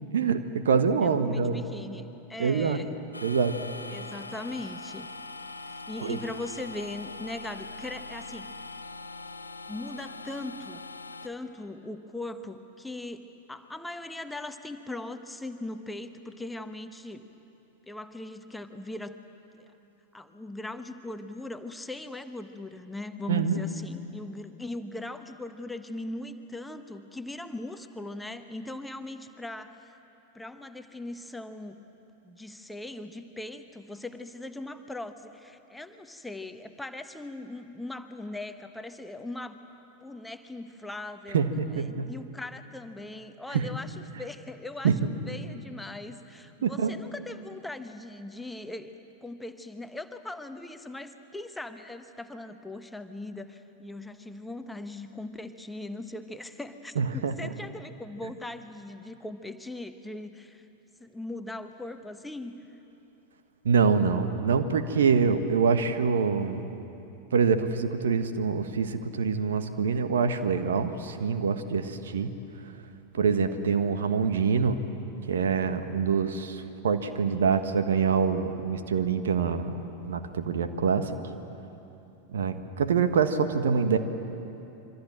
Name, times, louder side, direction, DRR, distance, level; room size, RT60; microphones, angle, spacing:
voice 1, 0.1-1.6 2.4-2.8 3.2-3.6 6.0-6.2 23.3-23.6 41.3-42.1 43.5-43.7 44.8-45.0 46.6-46.9 56.9-57.4 63.6-66.7 67.3-72.3 73.1-74.8 75.3-79.7 80.0-81.2 82.3-84.0, right 6 dB, 65° right, 9 dB, 1.5 m, -25 dB
voice 2, 1.0-3.0 3.9-5.1 5.7-8.5 9.7-10.8 11.2-17.2 17.9-19.2 19.5-19.7 20.1-29.9 30.3-31.8 32.2-39.6 40.0-60.7 61.0-62.6, left 2 dB, 5° left, 8 dB, 1.1 m, -40 dB
sound 1, 3.1-11.3, left 3 dB, 85° left, 1.0 m, -42 dB
26.5 x 24.5 x 7.6 m, 2.9 s
figure-of-eight pair, 90°, 0 cm